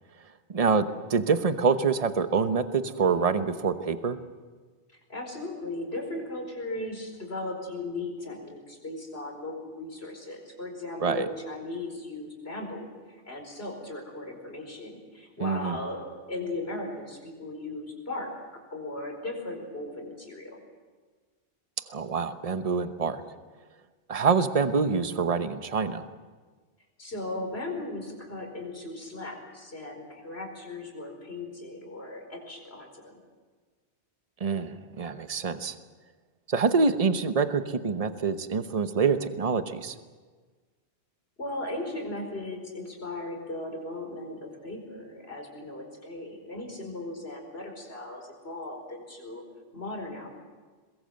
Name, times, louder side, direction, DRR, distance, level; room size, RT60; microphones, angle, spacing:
voice 1, 0.5-4.2 11.0-11.3 15.4-15.8 21.9-23.2 24.1-26.0 34.4-35.7 36.5-39.9, right 5 dB, 35° right, 9 dB, 1.1 m, -26 dB
voice 2, 5.1-16.0 16.3-18.3 18.7-20.6 27.0-33.2 41.4-49.4 49.7-50.3, left 2 dB, 70° left, 2 dB, 5.0 m, -37 dB
22.5 x 22.0 x 7.7 m, 1.4 s
omnidirectional pair, 1.1 m